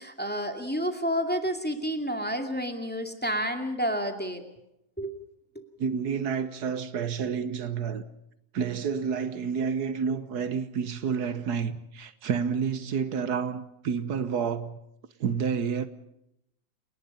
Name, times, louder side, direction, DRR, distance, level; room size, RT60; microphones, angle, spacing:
voice 1, 0.0-4.4 5.0-5.1 5.5-5.6, equal, 5° left, 2.3 m, -30 dB
voice 2, 5.8-8.1 8.5-14.8 15.2-15.9, right 6 dB, 80° right, 1.6 m, -29 dB
30.0 x 19.5 x 5.5 m
omnidirectional pair, 1.7 m